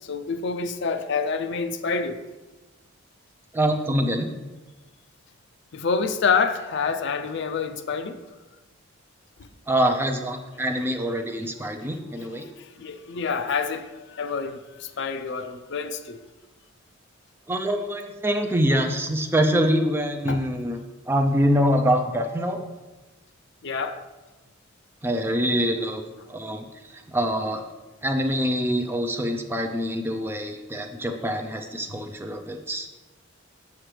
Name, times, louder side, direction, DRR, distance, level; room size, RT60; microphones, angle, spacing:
voice 1, 0.0-2.2 5.7-8.2 12.2-16.2 20.3-20.4 23.6-24.0 31.9-32.1, left 5 dB, 60° left, 0.5 m, -28 dB
voice 2, 3.5-4.3 9.7-12.5 17.5-22.6 25.0-26.0 26.3-26.6 27.1-27.6 28.0-32.9, equal, 10° right, 0.5 m, -25 dB
7.5 x 6.9 x 3.3 m
head